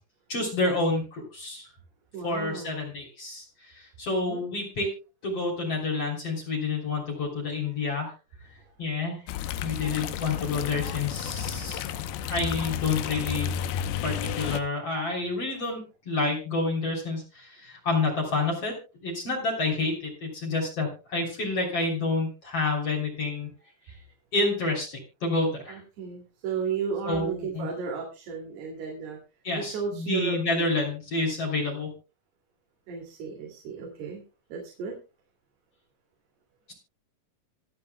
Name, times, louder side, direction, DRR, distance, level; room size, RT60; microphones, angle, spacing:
voice 1, 0.3-1.7 2.2-4.9 5.2-8.1 8.8-9.2 9.6-11.8 12.3-13.5 14.0-18.7 19.0-23.5 24.3-25.8 27.0-27.7 29.4-31.9, left 3 dB, 40° left, 0 dB, 4.0 m, -29 dB
voice 2, 2.1-2.8 4.1-4.4 8.6-8.7 9.9-10.0 15.2-15.6 25.7-29.2 29.6-30.4 32.9-34.2 34.5-34.9, right 6 dB, 80° right, 0 dB, 4.6 m, -34 dB
sound 1, 9.3-14.6, left 9 dB, 75° left, 2.7 m, -32 dB
26.0 x 8.6 x 2.2 m, 0.30 s
omnidirectional pair, 4.6 m